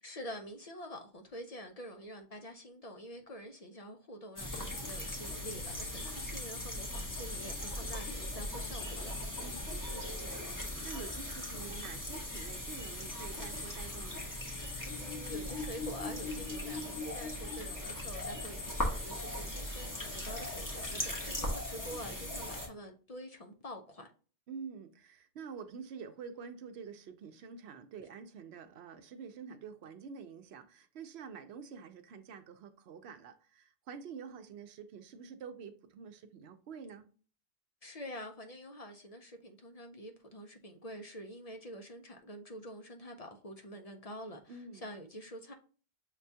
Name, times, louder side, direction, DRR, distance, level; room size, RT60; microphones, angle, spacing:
voice 1, 0.0-9.2 15.0-24.1 37.8-45.5, equal, 45° left, 0.5 m, -47 dB
sound 1, 4.4-22.7, left 1 dB, 20° left, 1.0 m, -39 dB
voice 2, 9.4-14.3 20.9-21.4 24.5-37.1 44.5-44.9, right 6 dB, 85° right, 0.8 m, -48 dB
6.6 x 2.3 x 2.6 m
omnidirectional pair, 1.1 m